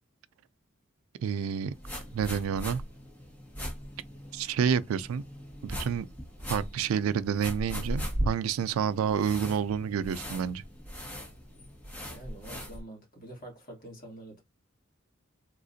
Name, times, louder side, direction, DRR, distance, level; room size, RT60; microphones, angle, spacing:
voice 1, 1.2-1.7 2.1-2.8 4.3-5.2 5.6-6.1 6.5-10.6, right 7 dB, 85° right, 0.3 m, -29 dB
sound 1, 1.7-12.8, equal, 10° left, 1.0 m, -38 dB
voice 2, 12.1-14.4, right 1 dB, 40° left, 1.4 m, -46 dB
3.6 x 2.4 x 2.6 m
head